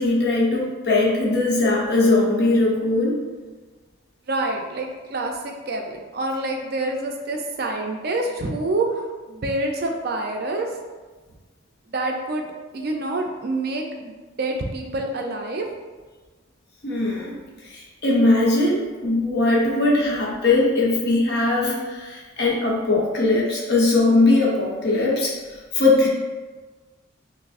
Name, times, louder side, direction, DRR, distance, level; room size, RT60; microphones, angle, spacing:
voice 1, 0.0-3.2 16.8-26.1, left 2 dB, 55° left, -3 dB, 0.8 m, -20 dB
voice 2, 4.3-10.7 11.9-12.5 12.7-14.1 14.4-15.6, right 2 dB, 50° right, 2 dB, 0.4 m, -27 dB
5.8 x 2.0 x 2.4 m, 1.3 s
head